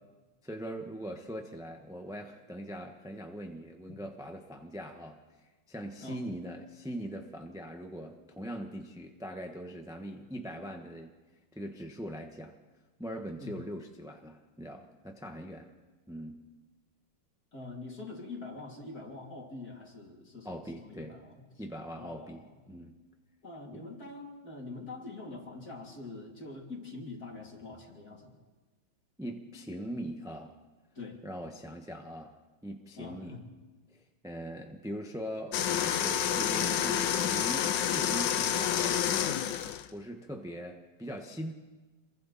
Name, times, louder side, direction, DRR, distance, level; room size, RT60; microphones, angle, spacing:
voice 1, 0.4-5.2 5.7-11.1 11.5-12.5 13.0-15.7 16.1-16.4 20.4-21.2 21.6-22.9 23.7-23.9 29.2-30.5 31.2-32.3 32.6-33.4 33.9-39.4 39.9-41.5, equal, ahead, 3 dB, 1.0 m, -41 dB
voice 2, 17.5-21.4 21.9-22.5 23.4-28.3 31.0-31.2 33.0-33.4, left 3 dB, 45° left, -1 dB, 3.7 m, -44 dB
sound 1, 35.5-39.9, left 9 dB, 70° left, 1.4 m, -29 dB
27.5 x 22.5 x 4.2 m, 1.3 s
omnidirectional pair, 2.2 m